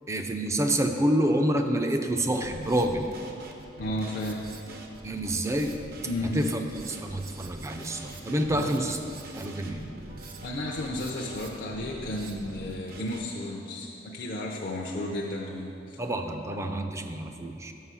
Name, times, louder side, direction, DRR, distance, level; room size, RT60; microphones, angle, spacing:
voice 1, 0.1-3.1 5.0-5.7 6.3-9.0 9.4-9.9 16.0-17.7, right 1 dB, 15° right, 5 dB, 0.4 m, -28 dB
Drum kit, 2.3-13.2, right 2 dB, 55° right, 0.7 m, -44 dB
voice 2, 3.8-4.5 6.1-6.4 8.5-8.9 10.4-16.0, left 1 dB, 50° left, -2 dB, 0.5 m, -33 dB
6.0 x 5.6 x 6.1 m, 2.7 s
head